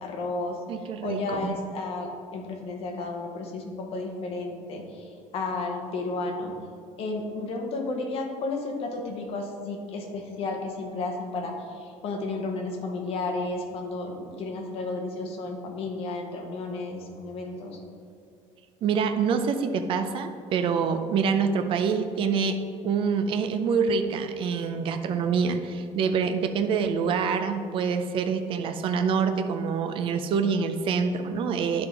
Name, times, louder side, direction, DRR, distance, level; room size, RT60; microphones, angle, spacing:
voice 1, 0.0-0.6 1.0-6.5 7.0-17.8, left 3 dB, 45° left, 2 dB, 0.9 m, -32 dB
voice 2, 0.7-1.6 18.8-22.6 22.8-31.9, right 5 dB, 40° right, 7 dB, 0.4 m, -26 dB
9.6 x 3.5 x 4.6 m, 2.2 s
cardioid pair, 175°, 14 cm